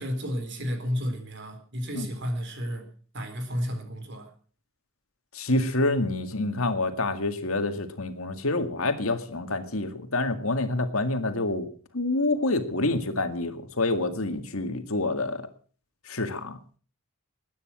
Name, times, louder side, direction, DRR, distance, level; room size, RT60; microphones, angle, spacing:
voice 1, 0.0-2.8 3.1-4.3, equal, 55° right, 5 dB, 4.0 m, -32 dB
voice 2, 5.3-11.7 11.9-15.4 16.1-16.6, left 2 dB, 75° left, 8 dB, 2.0 m, -27 dB
21.0 x 9.7 x 6.2 m, 0.43 s
head